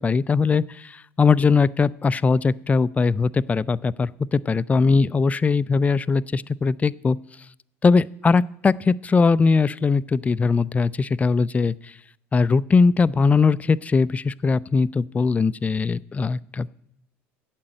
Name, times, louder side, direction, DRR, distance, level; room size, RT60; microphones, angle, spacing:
voice 1, 0.0-7.2 7.8-11.9 12.3-16.8, left 4 dB, 20° left, 17 dB, 0.4 m, -20 dB
8.7 x 7.5 x 8.9 m, 0.72 s
hypercardioid pair, 75°, 7 cm